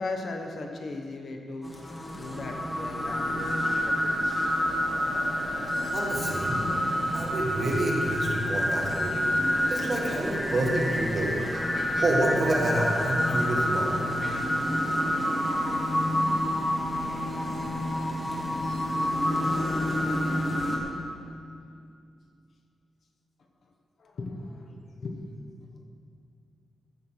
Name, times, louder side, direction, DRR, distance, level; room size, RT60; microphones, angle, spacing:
voice 1, 0.0-1.7 2.2-4.5 24.0-25.2, left 3 dB, 55° left, 3 dB, 1.0 m, -37 dB
sound 1, 1.6-20.8, equal, 15° left, 1.4 m, -28 dB
voice 2, 5.9-6.6 7.1-9.3 9.7-14.5, right 1 dB, 40° right, -2 dB, 1.8 m, -29 dB
15.0 x 5.9 x 6.1 m, 2.4 s
wide cardioid pair, 165°, 0 cm